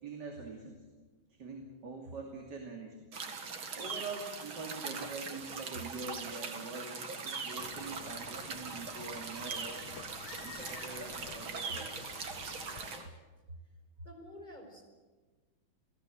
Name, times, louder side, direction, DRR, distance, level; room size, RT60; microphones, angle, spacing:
voice 1, 0.0-0.8 1.4-3.0 3.7-9.9 10.4-11.9, right 3 dB, 55° right, 1 dB, 3.3 m, -44 dB
sound 1, 3.1-13.0, right 5 dB, 75° right, 2.8 m, -41 dB
sound 2, 7.6-13.1, left 9 dB, 60° left, 1.5 m, -50 dB
voice 2, 14.0-14.8, left 1 dB, 20° left, 2 dB, 5.1 m, -49 dB
29.0 x 17.5 x 7.9 m, 1.3 s
omnidirectional pair, 2.2 m